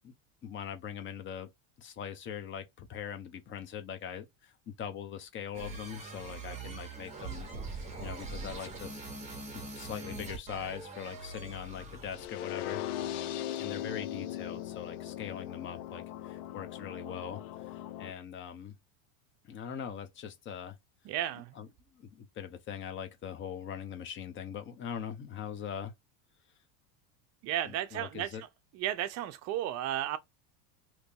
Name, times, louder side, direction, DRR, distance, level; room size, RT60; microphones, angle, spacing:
voice 1, 0.4-1.5 1.8-7.5 7.7-9.0 9.5-12.8 13.6-17.4 17.7-18.8 19.4-20.8 21.5-21.7 22.0-25.9 27.7-28.4, left 8 dB, 30° left, 0.7 m, -41 dB
sound 1, 5.5-12.3, right 3 dB, 15° right, 1.1 m, -42 dB
sound 2, 12.1-18.1, left 12 dB, 80° left, 0.6 m, -39 dB
voice 2, 21.0-21.6 27.4-28.3 28.7-30.2, right 12 dB, 40° right, 0.5 m, -33 dB
3.0 x 2.6 x 3.5 m
supercardioid pair, 140°, 42 cm